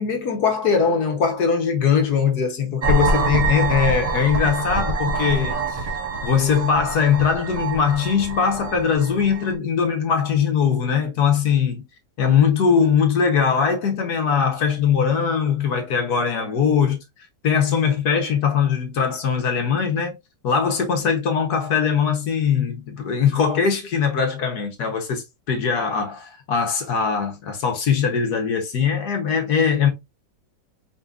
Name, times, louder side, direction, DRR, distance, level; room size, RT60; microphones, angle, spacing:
voice 1, 0.0-5.9 6.2-11.8 12.2-17.0 17.4-20.1 20.4-29.9, left 6 dB, 65° left, 1.4 m, -21 dB
sound 1, 2.8-9.5, right 3 dB, 50° right, 0.4 m, -25 dB
5.2 x 3.2 x 2.4 m
omnidirectional pair, 1.9 m